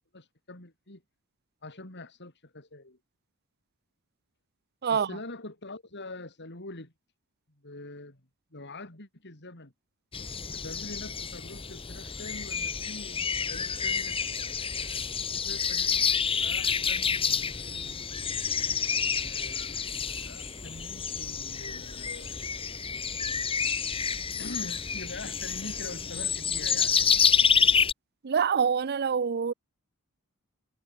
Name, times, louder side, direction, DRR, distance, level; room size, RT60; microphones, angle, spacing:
voice 1, 0.1-1.0 1.6-3.0 4.9-6.9 7.6-8.2 8.5-9.7 10.5-14.2 14.7-17.9 19.2-22.9 24.4-27.0, left 2 dB, 50° left, 4.4 m, -44 dB
voice 2, 4.8-5.2 28.2-29.5, right 6 dB, 45° right, 0.5 m, -26 dB
sound 1, 10.1-27.9, left 6 dB, 25° left, 1.6 m, -29 dB
head